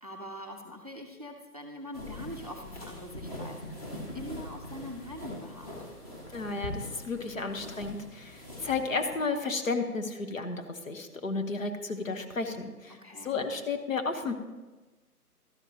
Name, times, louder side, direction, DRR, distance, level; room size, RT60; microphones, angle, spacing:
voice 1, 0.0-5.7 12.9-13.4, left 1 dB, 25° right, 2 dB, 0.6 m, -43 dB
sound 1, 1.9-9.2, left 1 dB, 25° left, 1.7 m, -42 dB
voice 2, 6.3-13.0 13.2-14.3, left 4 dB, 55° left, 6 dB, 1.2 m, -33 dB
12.5 x 10.5 x 2.9 m, 1.2 s
figure-of-eight pair, 150°, 46 cm